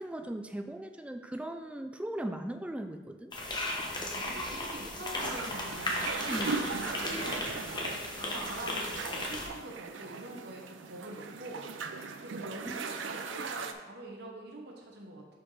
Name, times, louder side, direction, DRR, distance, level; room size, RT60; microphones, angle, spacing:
voice 1, 0.0-3.3 6.2-6.6 12.7-12.9, right 1 dB, 5° right, 6 dB, 0.3 m, -38 dB
sound 1, 3.3-9.5, left 1 dB, 25° left, 0.9 m, -36 dB
voice 2, 4.1-11.7 12.2-15.3, right 1 dB, 60° right, -1 dB, 1.1 m, -44 dB
sound 2, 5.2-13.7, right 4 dB, 85° right, 0.5 m, -39 dB
5.1 x 4.4 x 5.6 m, 1.2 s
head